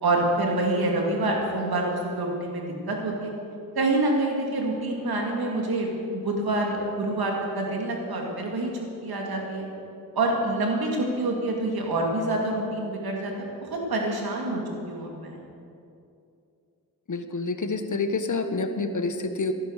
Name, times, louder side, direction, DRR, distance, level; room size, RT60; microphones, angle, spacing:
voice 1, 0.0-3.3 3.7-8.7 9.0-9.7 10.1-15.4, right 2 dB, 85° right, 0 dB, 2.5 m, -27 dB
voice 2, 17.1-19.5, left 3 dB, 55° left, 8 dB, 1.3 m, -28 dB
14.0 x 11.0 x 6.6 m, 2.6 s
cardioid pair, 40°, 36 cm